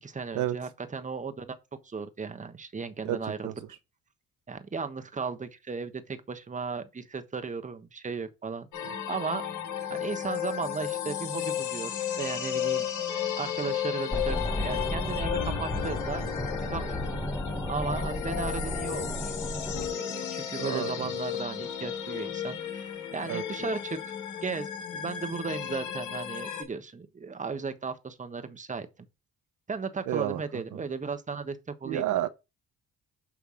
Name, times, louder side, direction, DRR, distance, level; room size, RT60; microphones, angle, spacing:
voice 1, 0.0-1.5 1.8-3.5 4.5-9.4 9.9-12.9 13.4-16.3 16.7-17.2 17.7-19.3 19.7-24.0 24.4-28.9 29.7-32.2, right 5 dB, 25° right, 1.1 m, -36 dB
sound 1, 8.7-26.6, left 10 dB, 75° left, 1.9 m, -34 dB
sound 2, 14.1-19.9, left 1 dB, 5° left, 1.1 m, -33 dB
voice 2, 20.6-21.1 23.3-23.4 30.1-30.4 31.8-32.3, right 13 dB, 85° right, 0.7 m, -29 dB
7.0 x 3.3 x 6.2 m
cardioid pair, 90°, 30 cm